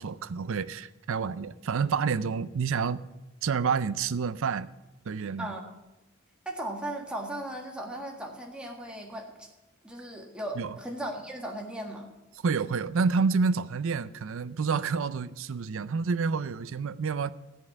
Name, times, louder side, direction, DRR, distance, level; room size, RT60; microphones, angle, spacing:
voice 1, 0.0-3.0 3.4-4.7 5.1-5.5 10.6-10.8 12.4-17.3, right 5 dB, 65° right, 0.5 m, -28 dB
voice 2, 5.4-5.7 6.4-9.5 9.8-12.1, right 1 dB, 5° right, 1.7 m, -37 dB
14.0 x 5.4 x 9.5 m
head